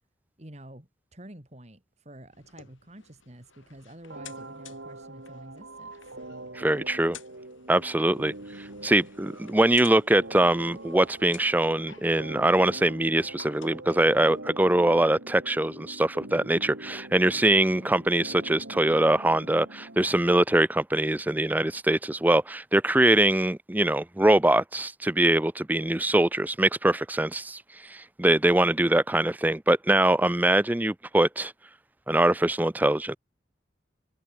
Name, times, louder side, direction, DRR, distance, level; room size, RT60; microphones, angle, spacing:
voice 1, 0.4-5.9 17.2-17.4, right 1 dB, 35° right, 2.4 m, -48 dB
sound 1, 2.3-14.4, left 7 dB, 90° left, 7.6 m, -53 dB
sound 2, 4.1-20.1, right 2 dB, 75° right, 3.6 m, -44 dB
voice 2, 6.6-7.2 7.7-31.5 32.1-33.2, right 1 dB, 10° right, 0.5 m, -23 dB
head